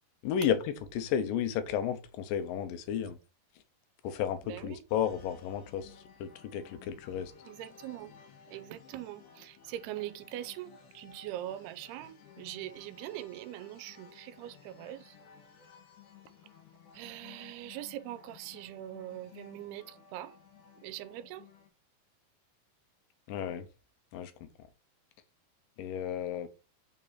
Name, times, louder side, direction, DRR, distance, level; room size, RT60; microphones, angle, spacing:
voice 1, 0.2-0.6 0.9-3.2 4.0-7.3 23.3-23.7 24.1-24.5 25.8-26.5, left 9 dB, 70° left, 2.3 m, -33 dB
voice 2, 4.4-4.8 7.5-8.1 8.5-15.2 16.9-20.4 20.8-21.5, right 13 dB, 85° right, 2.6 m, -42 dB
sound 1, 4.9-21.7, left 6 dB, 90° left, 4.0 m, -56 dB
8.9 x 4.2 x 4.1 m
omnidirectional pair, 4.6 m